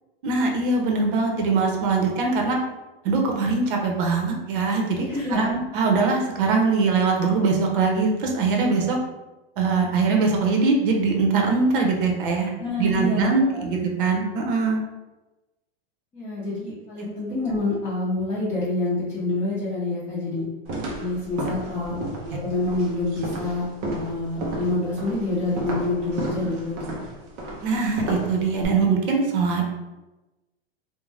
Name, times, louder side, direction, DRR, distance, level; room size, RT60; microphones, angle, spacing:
voice 1, 0.2-2.6 3.0-9.0 9.6-12.5 12.8-14.8 21.9-22.0 22.3-22.4 27.6-29.7, right 4 dB, 60° right, 1 dB, 0.7 m, -22 dB
voice 2, 5.0-5.5 12.6-13.6 16.1-20.4 20.9-22.0 22.3-26.8, left 2 dB, 15° left, -11 dB, 0.6 m, -27 dB
sound 1, 20.7-28.6, right 1 dB, 25° right, 0.4 m, -33 dB
2.5 x 2.1 x 3.2 m, 1.1 s
supercardioid pair, 150°, 30 cm